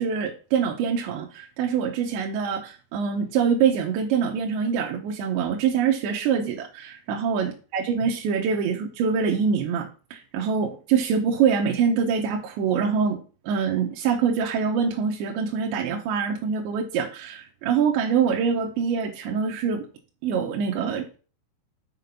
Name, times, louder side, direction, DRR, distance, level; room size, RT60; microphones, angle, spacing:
voice 1, 0.0-13.2 13.4-19.9 20.2-21.2, right 6 dB, 75° right, 0 dB, 3.1 m, -24 dB
6.8 x 5.7 x 5.7 m, 0.36 s
omnidirectional pair, 5.7 m